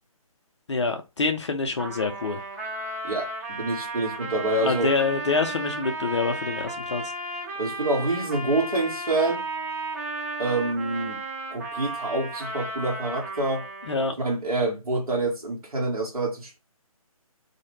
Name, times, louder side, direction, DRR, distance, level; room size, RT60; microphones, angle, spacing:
voice 1, 0.7-2.4 4.6-7.0 13.9-14.1, left 4 dB, 50° left, 0.4 m, -26 dB
Trumpet, 1.8-14.2, right 2 dB, 25° right, 0.7 m, -34 dB
voice 2, 3.0-4.9 7.6-9.4 10.4-11.2 11.5-13.7 14.2-16.6, right 2 dB, 75° right, 0.9 m, -27 dB
2.1 x 2.0 x 3.1 m
figure-of-eight pair, 145°, 19 cm